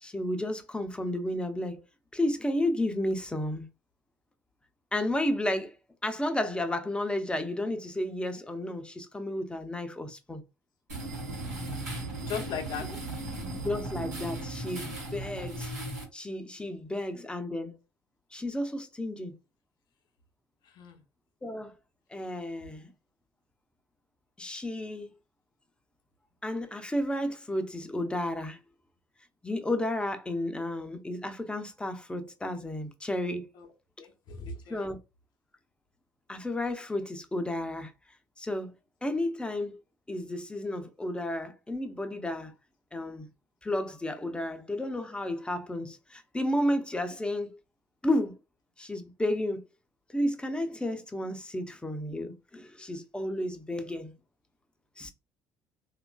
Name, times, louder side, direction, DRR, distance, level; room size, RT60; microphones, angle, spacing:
voice 1, 0.0-1.8 2.1-3.7 4.9-5.7 6.0-10.4 13.6-15.7 16.1-17.7 18.3-19.3 21.4-21.7 22.1-22.9 24.4-25.1 26.4-28.6 29.4-33.5 34.7-35.0 36.3-37.9 38.4-38.7 39.0-39.8 40.1-42.5 42.9-43.3 43.6-47.6 48.0-48.4 48.8-49.7 50.1-54.1 55.0-55.1, left 1 dB, 10° left, 0.6 m, -32 dB
sound 1, 10.9-16.0, right 2 dB, 90° right, 1.3 m, -36 dB
voice 2, 12.2-12.9 20.6-21.0 33.5-33.7 34.0-34.9, left 6 dB, 55° left, 0.7 m, -38 dB
2.9 x 2.4 x 2.3 m
hypercardioid pair, 55°, 9 cm